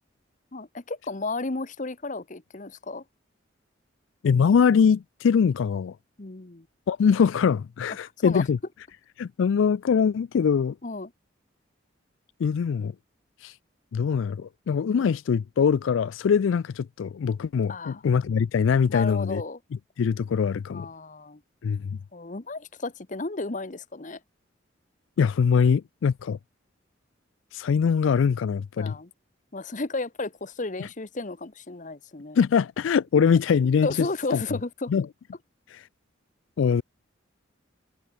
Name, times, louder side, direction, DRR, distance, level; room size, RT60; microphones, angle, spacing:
voice 1, 0.5-3.0 6.2-6.7 8.0-8.4 10.8-11.1 14.8-15.1 17.7-18.0 18.9-19.6 20.7-21.4 22.1-24.2 28.8-29.1 29.5-32.4 33.8-34.9, left 3 dB, 40° left, 1.0 m, -33 dB
voice 2, 4.2-6.0 6.9-8.6 9.2-10.8 12.4-12.9 13.4-13.6 13.9-19.4 20.0-20.9 21.6-22.0 25.2-26.4 27.5-29.0 30.8-30.9 32.4-34.4 34.9-35.1 35.7-35.9 36.6-36.8, left 6 dB, 75° left, 0.3 m, -23 dB
head